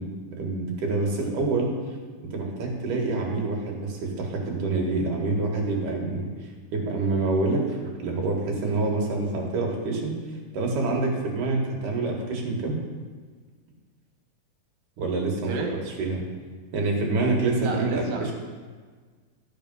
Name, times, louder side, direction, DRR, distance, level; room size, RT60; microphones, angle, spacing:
voice 1, 0.0-1.8 2.2-6.3 6.7-10.2 10.5-12.8 15.0-15.5 16.0-16.2 16.7-18.3, right 3 dB, 75° right, 0 dB, 3.1 m, -26 dB
voice 2, 17.6-18.3, right 4 dB, 90° right, 1 dB, 3.2 m, -31 dB
12.0 x 6.3 x 5.3 m, 1.5 s
omnidirectional pair, 3.8 m